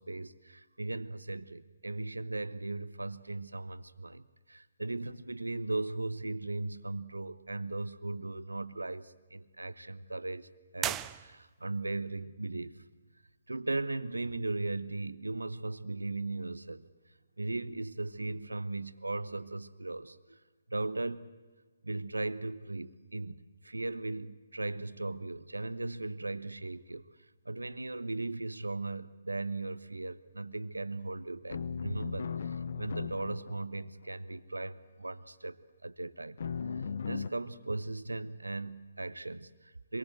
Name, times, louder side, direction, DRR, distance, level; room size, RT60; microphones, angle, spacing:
voice 1, 0.0-12.8 13.5-16.9 17.4-20.4 20.7-21.3 21.8-27.1 27.4-36.4 36.7-40.0, right 2 dB, 85° right, 14 dB, 1.2 m, -38 dB
sound 1, 10.8-11.8, right 12 dB, 20° right, 0.7 m, -37 dB
sound 2, 31.5-33.9 36.4-37.3, left 6 dB, 60° left, 1.0 m, -37 dB
26.0 x 22.5 x 7.8 m, 1.2 s
figure-of-eight pair, 135°, 0 cm